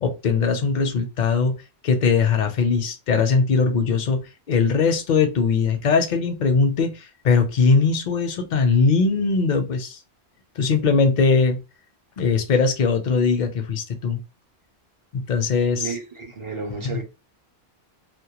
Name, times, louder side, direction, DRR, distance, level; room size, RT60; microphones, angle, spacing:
voice 1, 0.0-10.0 10.6-11.6 12.2-14.2 15.1-15.9 16.8-17.0, left 5 dB, 55° left, 0.5 m, -20 dB
voice 2, 15.8-17.0, right 4 dB, 40° right, 0.5 m, -32 dB
2.1 x 2.1 x 2.8 m
omnidirectional pair, 1.1 m